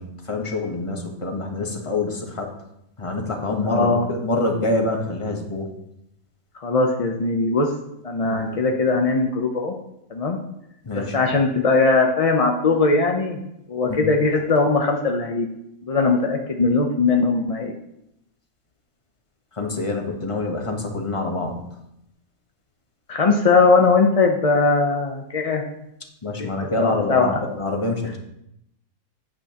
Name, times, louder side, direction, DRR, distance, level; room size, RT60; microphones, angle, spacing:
voice 1, 0.0-2.5 3.0-5.7 8.2-8.7 10.8-11.1 13.9-14.0 19.6-21.6 26.2-28.2, left 2 dB, 25° left, 2 dB, 1.0 m, -26 dB
voice 2, 3.6-4.1 6.6-7.7 8.0-9.7 10.1-10.4 10.9-13.4 13.7-15.5 15.8-17.7 23.1-25.6 26.8-27.4, left 3 dB, 50° left, 2 dB, 0.4 m, -20 dB
8.7 x 8.6 x 2.9 m, 0.81 s
omnidirectional pair, 1.5 m